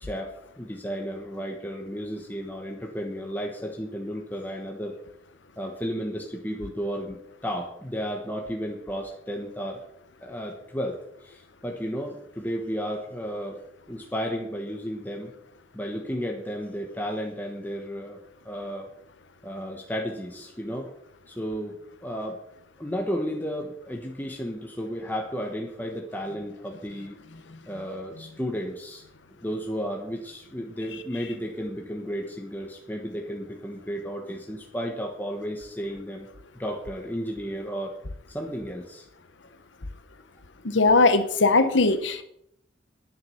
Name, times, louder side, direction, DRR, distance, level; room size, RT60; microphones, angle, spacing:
voice 1, 0.0-5.0 5.6-9.8 10.2-13.6 13.9-15.3 15.7-18.2 18.4-18.9 19.4-20.9 21.3-22.4 22.8-27.2 27.7-29.0 29.3-36.3 36.6-38.0 38.3-39.0, equal, 10° left, 1 dB, 1.3 m, -33 dB
voice 2, 40.6-42.2, left 3 dB, 80° left, 10 dB, 1.0 m, -20 dB
10.5 x 9.4 x 5.8 m, 0.73 s
head